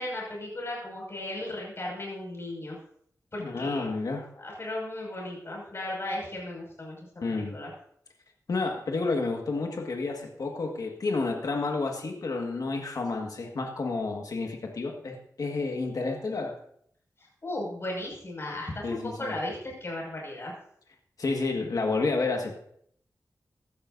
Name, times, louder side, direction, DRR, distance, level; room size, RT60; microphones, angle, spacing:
voice 1, 0.0-2.8 3.3-3.8 4.4-7.0 7.3-7.7 17.4-20.5, left 1 dB, 45° left, -2 dB, 5.9 m, -36 dB
voice 2, 3.4-4.3 7.2-7.6 8.5-16.6 18.8-19.4 21.2-22.5, left 3 dB, 75° left, 2 dB, 1.7 m, -30 dB
16.0 x 12.0 x 2.7 m, 0.66 s
wide cardioid pair, 100°, 6 cm